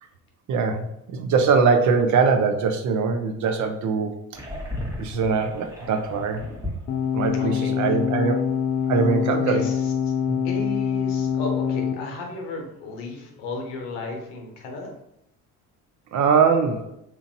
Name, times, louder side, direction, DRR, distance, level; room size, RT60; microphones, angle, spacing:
voice 1, 0.5-4.4 5.0-6.4 7.1-8.5 8.9-9.7 10.3-10.4 16.1-16.9, right 5 dB, 40° right, 6 dB, 0.5 m, -22 dB
sound 1, 4.3-8.4 8.7-8.8 9.3-9.4, left 1 dB, 5° right, 0.8 m, -36 dB
sound 2, 6.9-11.9, left 8 dB, 40° left, 0.5 m, -24 dB
voice 2, 7.3-8.0 9.5-10.1 10.4-14.9, left 2 dB, 65° left, 2 dB, 0.9 m, -34 dB
2.9 x 2.4 x 2.6 m, 0.79 s
hypercardioid pair, 55°, 46 cm